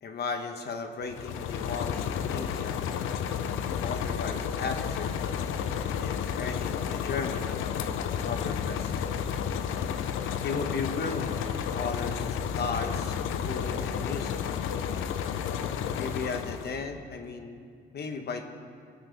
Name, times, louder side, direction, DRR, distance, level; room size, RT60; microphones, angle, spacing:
voice 1, 0.0-2.8 3.8-5.2 5.8-8.9 10.4-13.2 13.5-14.4 15.9-17.6 17.9-18.4, left 4 dB, 55° left, 6 dB, 1.3 m, -36 dB
sound 1, 1.0-16.8, left 8 dB, 85° left, 0.7 m, -31 dB
22.0 x 8.8 x 3.6 m, 2.2 s
cardioid pair, 90°, 20 cm